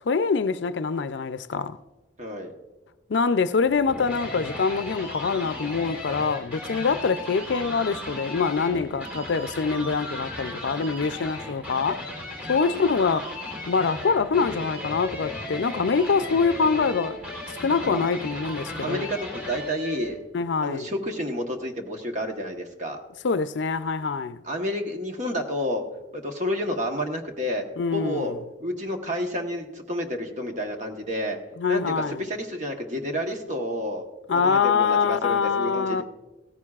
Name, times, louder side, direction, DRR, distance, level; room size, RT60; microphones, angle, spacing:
voice 1, 0.1-1.8 3.1-12.1 12.5-13.3 13.7-17.2 17.6-19.1 20.3-20.9 23.2-24.4 27.8-28.4 31.6-32.3 34.3-36.0, left 5 dB, 70° left, 0.4 m, -24 dB
voice 2, 2.2-2.5 12.6-12.8 17.8-18.0 18.8-20.2 20.6-23.0 24.4-25.8 26.1-27.7 27.9-28.3 28.6-31.4 31.7-34.0 34.3-36.0, equal, 40° right, 1.1 m, -30 dB
sound 1, 3.6-20.1, left 1 dB, 10° right, 3.4 m, -36 dB
16.5 x 14.5 x 2.4 m
head